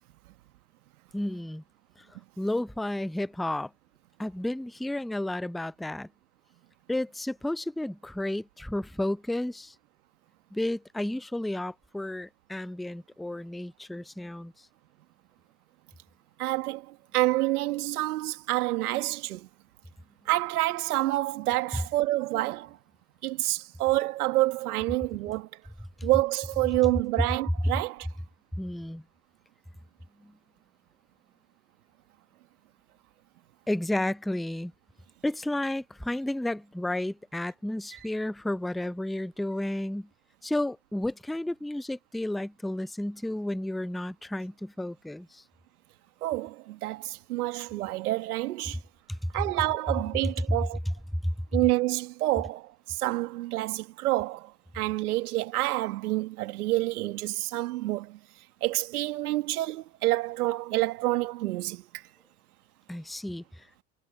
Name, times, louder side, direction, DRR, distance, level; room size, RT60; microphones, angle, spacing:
voice 1, 1.1-1.6 2.0-2.1 2.4-3.7 4.2-6.1 6.9-9.8 10.5-14.7 28.5-29.0 30.2-30.3 33.7-34.7 35.2-40.1 40.4-45.4 49.1-49.3 51.2-51.3 62.9-63.7, left 1 dB, ahead, 0.5 m, -32 dB
voice 2, 16.4-19.5 20.3-22.8 23.2-25.6 26.0-28.1 37.9-38.0 46.2-48.8 49.3-50.8 51.5-58.2 58.6-62.1, right 17 dB, 75° right, 2.1 m, -28 dB
hypercardioid pair, 75°, 45 cm